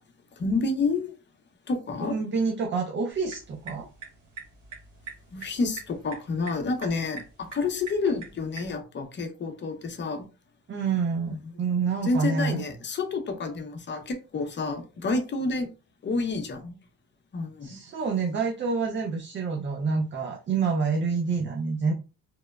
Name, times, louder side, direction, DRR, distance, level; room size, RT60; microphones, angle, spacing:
voice 1, 0.4-1.1 1.7-2.1 5.3-10.3 11.3-11.4 11.7-15.7 16.0-16.8 17.3-17.8, left 3 dB, 40° left, 6 dB, 0.7 m, -29 dB
voice 2, 2.0-3.9 10.7-12.6 17.6-21.9, right 5 dB, 40° right, 2 dB, 0.5 m, -27 dB
sound 1, 3.1-8.8, right 5 dB, 75° right, 1.0 m, -45 dB
2.9 x 2.1 x 2.3 m, 0.33 s
cardioid pair, 90°, 30 cm